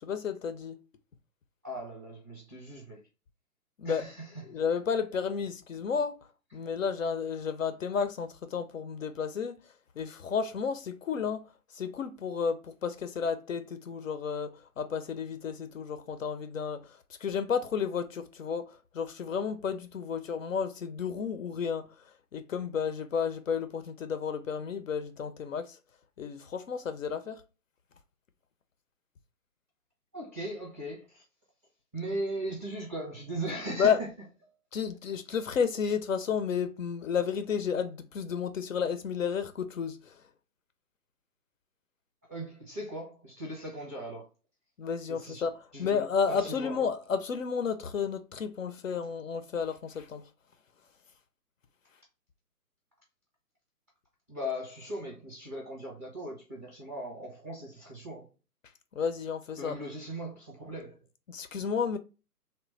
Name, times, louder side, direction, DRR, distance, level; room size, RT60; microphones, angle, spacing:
voice 1, 0.0-0.8 3.8-4.0 4.4-9.6 10.0-11.5 11.7-21.8 22.3-25.8 26.2-27.4 33.8-34.0 34.7-40.2 44.8-50.2 58.9-59.8 61.3-62.0, left 6 dB, 60° left, 0.5 m, -32 dB
voice 2, 1.6-3.0 3.8-4.6 30.1-31.2 31.9-34.1 42.3-44.3 45.1-45.4 45.7-46.0 46.3-46.8 54.3-58.3 59.6-61.0, right 1 dB, 10° right, 0.5 m, -38 dB
3.1 x 2.1 x 2.9 m
figure-of-eight pair, 140°, 47 cm